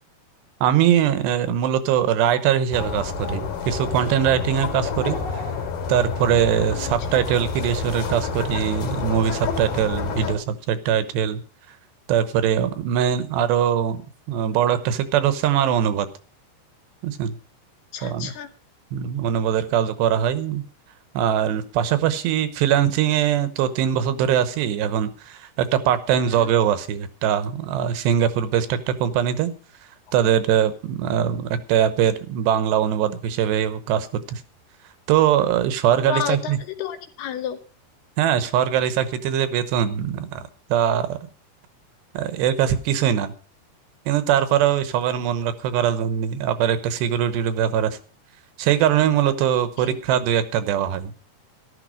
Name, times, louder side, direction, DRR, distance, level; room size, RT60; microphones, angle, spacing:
voice 1, 0.6-5.4 5.9-11.4 12.1-14.0 14.3-16.1 17.0-17.3 18.0-18.3 18.9-20.6 21.1-29.5 30.1-34.4 35.1-36.6 38.2-40.4 40.7-41.2 42.1-43.3 44.1-48.0 48.6-51.1, right 9 dB, 75° right, 12 dB, 3.0 m, -22 dB
sound 1, 2.7-10.4, left 5 dB, 55° left, 3.6 m, -29 dB
voice 2, 17.9-18.5 26.1-26.5 36.1-37.6 49.8-50.0, left 9 dB, 75° left, 9 dB, 2.6 m, -31 dB
12.5 x 12.5 x 5.0 m, 0.37 s
omnidirectional pair, 5.2 m